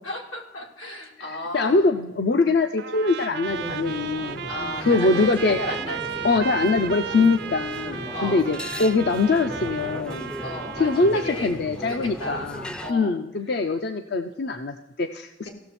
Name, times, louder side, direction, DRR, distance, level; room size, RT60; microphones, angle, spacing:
voice 1, 0.0-1.9 4.5-6.7 8.1-8.5 10.4-11.5 11.8-12.5 12.8-13.2 15.4-15.5, left 1 dB, 85° left, 0 dB, 2.7 m, -34 dB
voice 2, 1.2-4.5 4.8-5.6 6.2-10.3 10.8-15.5, left 3 dB, 55° left, 8 dB, 0.5 m, -23 dB
Trumpet, 2.8-11.4, right 7 dB, 55° right, 0.5 m, -34 dB
sound 1, 3.4-12.9, equal, 5° left, 0.4 m, -37 dB
16.0 x 6.9 x 4.2 m, 1.0 s
head